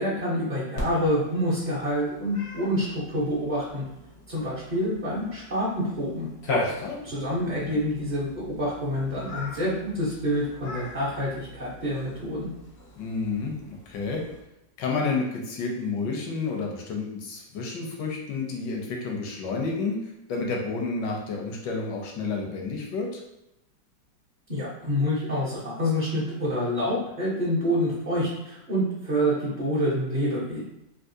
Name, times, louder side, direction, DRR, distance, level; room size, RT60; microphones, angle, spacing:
voice 1, 0.0-3.8 4.3-6.3 7.0-12.5 24.5-30.6, equal, 35° right, -10 dB, 0.7 m, -27 dB
Cat, 0.8-14.4, left 2 dB, 55° left, 0.7 m, -38 dB
voice 2, 6.6-7.0 7.3-7.4 7.7-7.8 13.0-13.5 13.9-14.2 14.8-20.0 20.3-23.2, left 4 dB, 75° left, 1 dB, 1.2 m, -30 dB
3.5 x 2.6 x 2.6 m, 0.86 s
omnidirectional pair, 2.0 m